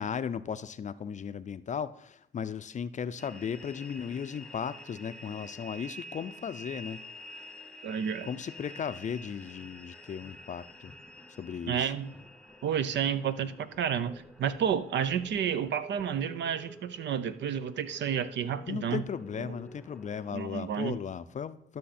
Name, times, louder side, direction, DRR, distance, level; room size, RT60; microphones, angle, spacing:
voice 1, 0.0-7.0 8.2-10.9 11.4-11.9 18.7-21.8, left 7 dB, 40° left, 13 dB, 0.5 m, -36 dB
sound 1, 3.2-20.3, left 1 dB, 5° left, 0.9 m, -49 dB
voice 2, 7.8-8.3 11.7-12.1 12.6-19.0 20.3-21.0, right 8 dB, 65° right, 13 dB, 0.6 m, -30 dB
12.5 x 6.5 x 4.2 m, 0.75 s
cardioid pair, 90°, 20 cm